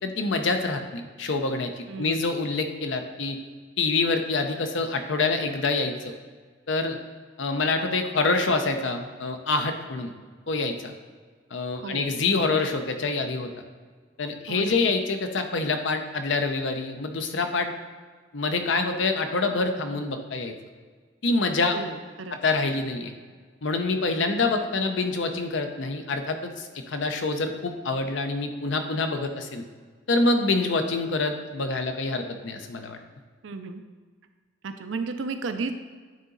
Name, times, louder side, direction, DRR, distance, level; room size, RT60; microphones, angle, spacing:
voice 1, 0.0-3.4 3.8-6.1 6.7-7.0 7.4-10.1 10.5-10.9 11.5-13.5 14.2-17.7 18.3-20.5 21.2-21.8 22.4-23.1 23.6-29.6 30.1-33.0, left 3 dB, 75° left, 6 dB, 0.7 m, -26 dB
voice 2, 1.9-2.2 11.8-12.1 14.5-14.8 21.7-22.4 33.4-33.8 34.6-35.9, right 4 dB, 75° right, 8 dB, 0.5 m, -33 dB
9.3 x 4.0 x 3.9 m, 1.5 s
head